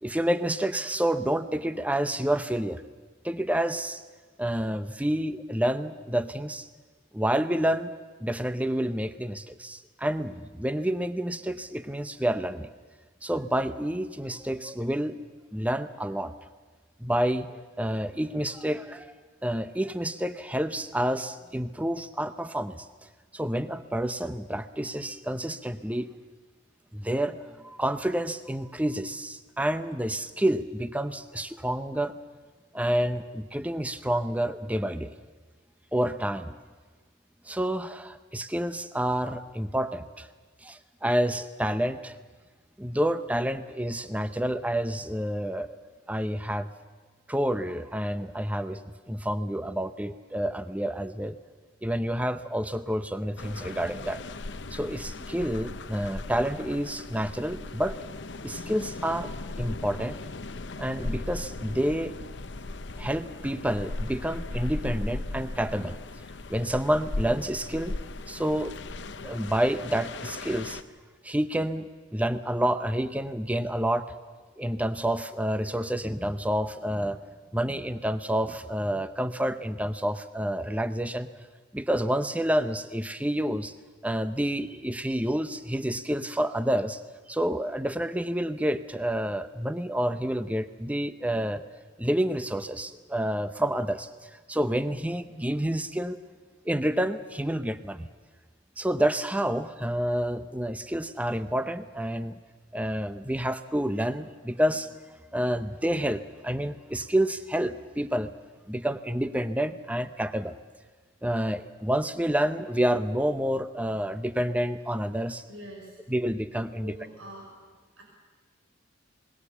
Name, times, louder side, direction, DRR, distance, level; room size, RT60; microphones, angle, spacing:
voice 1, 0.0-2.8 3.2-4.0 4.4-6.7 7.1-7.9 8.2-12.7 13.2-15.2 15.5-16.3 17.0-19.1 19.4-22.9 23.3-26.1 26.9-32.1 32.7-35.1 35.9-36.5 37.5-40.3 40.6-42.2 42.8-45.7 46.1-46.7 47.3-48.8 49.1-51.4 51.8-54.2 54.7-58.0 58.4-59.3 59.6-60.2 60.8-62.1 63.0-66.0 66.5-68.0 68.3-68.7 69.2-70.8 71.2-74.1 74.6-77.2 77.5-81.3 81.7-83.8 84.0-87.0 87.3-91.6 92.0-96.2 96.6-98.1 98.8-102.3 102.7-104.9 105.3-108.3 108.7-110.6 111.2-115.4 116.1-116.9, right 1 dB, 5° right, 11 dB, 0.7 m, -29 dB
sound 1, 53.4-70.8, left 2 dB, 60° left, 0.8 m, -37 dB
voice 2, 115.5-116.0 116.8-117.6 118.0-118.1, right 1 dB, 85° right, 0 dB, 5.9 m, -44 dB
27.0 x 20.5 x 7.1 m, 1.4 s
head